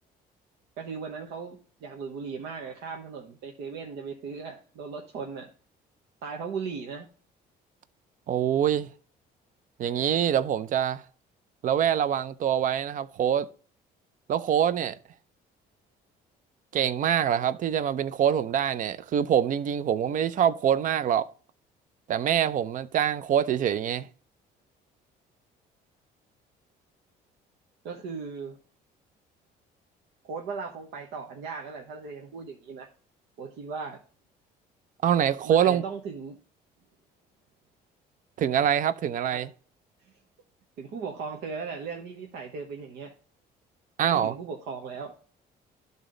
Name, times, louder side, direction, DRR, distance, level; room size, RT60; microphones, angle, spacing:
voice 1, 0.8-5.5 6.2-7.1 27.8-28.6 30.2-32.9 33.4-34.0 35.4-36.4 39.3-39.4 40.8-43.1 44.0-45.1, right 5 dB, 80° right, 1.1 m, -37 dB
voice 2, 8.3-8.9 9.8-11.0 11.6-13.5 14.3-15.0 16.7-21.3 22.1-24.1 35.0-35.8 38.4-39.5 44.0-44.3, right 9 dB, 50° right, 0.6 m, -25 dB
12.0 x 4.1 x 3.8 m
cardioid pair, 110°, 17 cm